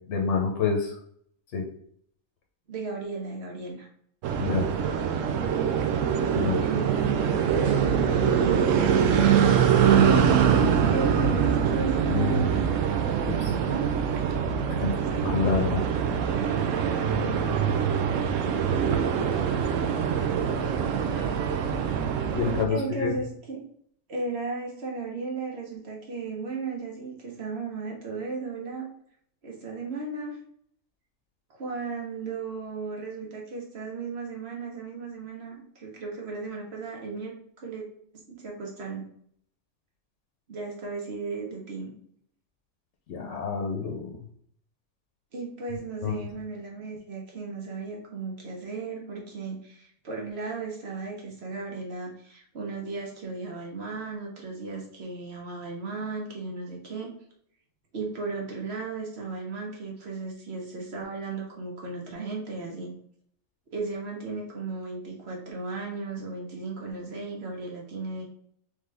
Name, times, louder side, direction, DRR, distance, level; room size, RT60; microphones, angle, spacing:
voice 1, 0.1-1.0 1.5-1.6 4.4-4.6 6.3-6.6 12.1-12.5 13.3-13.5 14.8-15.8 22.3-23.2 43.1-44.2 46.0-46.1, left 5 dB, 65° left, 1 dB, 0.9 m, -27 dB
voice 2, 2.7-3.9 6.6-7.4 7.9-9.8 10.9-12.5 13.7-13.9 14.8-15.2 21.1-21.5 22.7-23.6 24.1-28.9 29.4-30.4 31.5-37.9 38.3-39.0 40.5-41.9 45.3-57.1 57.9-62.9 63.7-68.2, right 4 dB, 55° right, -1 dB, 1.1 m, -35 dB
sound 1, 4.2-22.6, right 7 dB, 70° right, 0.9 m, -24 dB
3.8 x 3.4 x 3.4 m, 0.66 s
omnidirectional pair, 1.4 m